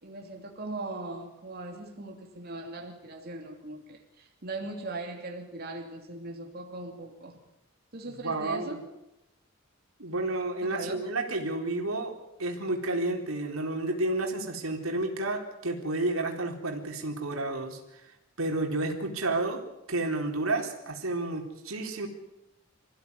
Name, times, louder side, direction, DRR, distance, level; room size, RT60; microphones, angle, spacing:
voice 1, 0.0-7.4 7.9-8.9 10.6-11.0, right 2 dB, 50° right, 2 dB, 3.0 m, -39 dB
voice 2, 8.2-8.8 10.0-17.8 18.4-19.6 19.9-22.1, right 2 dB, 90° right, 3 dB, 4.1 m, -31 dB
26.5 x 16.0 x 9.7 m, 0.90 s
head